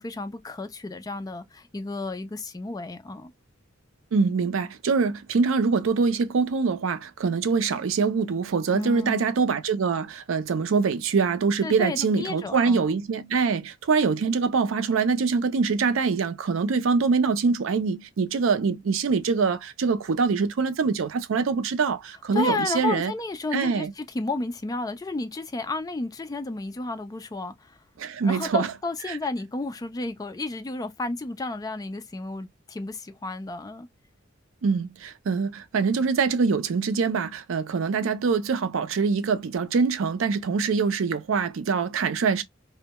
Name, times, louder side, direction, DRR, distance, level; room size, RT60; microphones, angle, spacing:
voice 1, 0.0-3.3 8.7-9.3 11.6-12.9 22.3-27.8 28.2-33.9, left 2 dB, 20° left, 0.3 m, -32 dB
voice 2, 4.1-23.1 23.5-23.9 28.0-28.7 29.1-29.2 34.6-42.4, right 5 dB, 80° right, 0.4 m, -24 dB
2.2 x 2.1 x 2.8 m
head